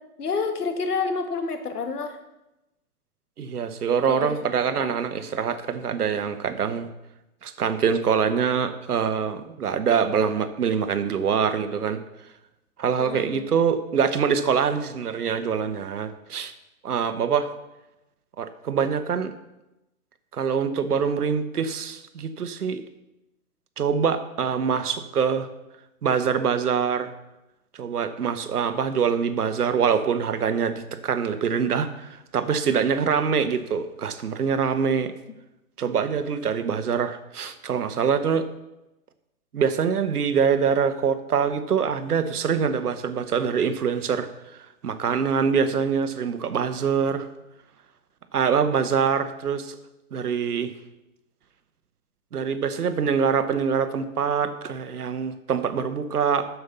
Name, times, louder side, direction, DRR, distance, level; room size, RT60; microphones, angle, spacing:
voice 1, 0.2-2.2 4.1-4.4 4.7-4.9 13.0-13.5, left 4 dB, 90° left, 7 dB, 1.7 m, -29 dB
voice 2, 3.4-6.9 7.4-12.0 12.8-16.5 16.8-17.5 18.4-19.3 20.3-22.8 23.8-25.5 26.0-27.1 27.7-35.1 35.8-38.5 39.5-44.3 44.8-47.3 48.3-49.8 50.1-50.7 52.3-56.5, right 6 dB, 85° right, 10 dB, 1.2 m, -24 dB
7.9 x 7.1 x 6.9 m, 0.94 s
hypercardioid pair, 155°, 44 cm